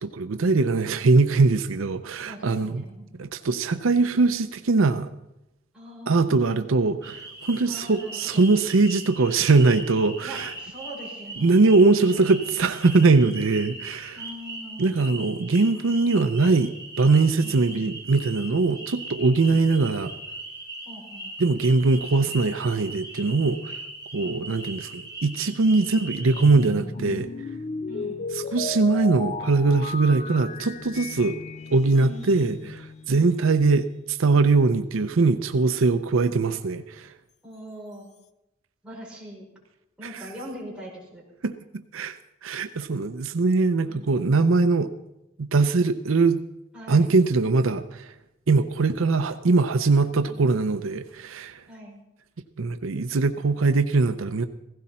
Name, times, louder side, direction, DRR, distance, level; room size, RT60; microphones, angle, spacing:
voice 1, 0.0-2.8 3.2-5.1 6.1-10.5 11.4-14.2 14.8-16.7 17.0-20.1 21.4-23.7 24.1-27.3 28.5-31.4 31.7-32.6 33.1-37.1 41.4-41.5 41.9-42.2 42.4-44.9 45.4-46.4 46.9-48.1 48.5-51.6 52.6-54.4, right 3 dB, 75° right, 10 dB, 0.6 m, -21 dB
voice 2, 2.2-3.1 5.7-6.5 7.6-8.5 10.2-12.2 14.1-15.0 17.4-17.9 18.8-18.9 20.9-21.3 24.2-24.5 25.8-26.5 27.9-28.2 32.0-32.6 33.1-33.4 37.4-38.1 38.8-39.5 40.0-41.2 43.8-44.1 46.7-47.1 51.7-52.0, equal, 5° right, -6 dB, 5.2 m, -42 dB
sound 1, 7.0-26.7, right 2 dB, 20° left, 6.1 m, -39 dB
sound 2, 26.2-33.5, left 3 dB, 35° left, 0.5 m, -35 dB
16.0 x 16.0 x 4.3 m, 0.90 s
head